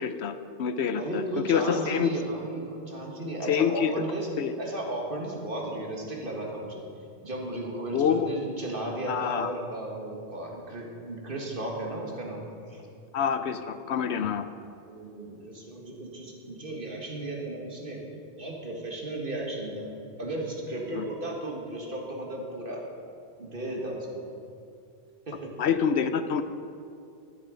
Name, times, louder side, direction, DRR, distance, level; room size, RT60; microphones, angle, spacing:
voice 1, 0.0-2.1 3.4-4.0 4.4-4.5 7.9-8.3 9.1-9.5 13.1-14.5 20.9-21.1 25.6-26.4, left 7 dB, 70° left, 10 dB, 0.9 m, -27 dB
voice 2, 1.0-4.3 4.6-6.9 7.2-12.4 12.7-12.8 14.9-18.0 18.4-19.9 20.2-22.9 23.4-24.2 25.3-25.5, right 1 dB, 50° right, -1 dB, 2.1 m, -35 dB
12.5 x 10.5 x 5.1 m, 2.5 s
omnidirectional pair, 1.2 m